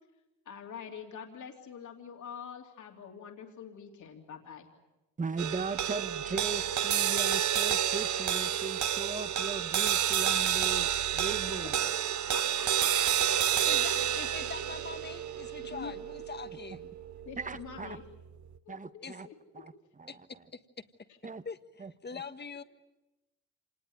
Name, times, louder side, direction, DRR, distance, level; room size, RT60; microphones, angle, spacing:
voice 1, 0.4-4.7 11.8-12.9 13.5-13.6 15.6-15.9 17.2-18.0 18.6-19.6 21.1-21.2, left 7 dB, 65° left, 2 dB, 3.1 m, -46 dB
voice 2, 5.2-11.9 16.5-16.6 17.4-18.0 18.7-19.3 19.5-19.7 20.0-20.4 21.2-21.4 21.8-22.2, right 4 dB, 25° right, 14 dB, 1.1 m, -38 dB
sound 1, 5.4-17.9, right 10 dB, 65° right, 1.0 m, -30 dB
voice 3, 13.6-16.9 19.0-19.1 20.1-20.2 21.4-22.6, left 5 dB, 35° left, 10 dB, 1.5 m, -43 dB
26.0 x 20.0 x 9.4 m, 1.0 s
cardioid pair, 80°, 32 cm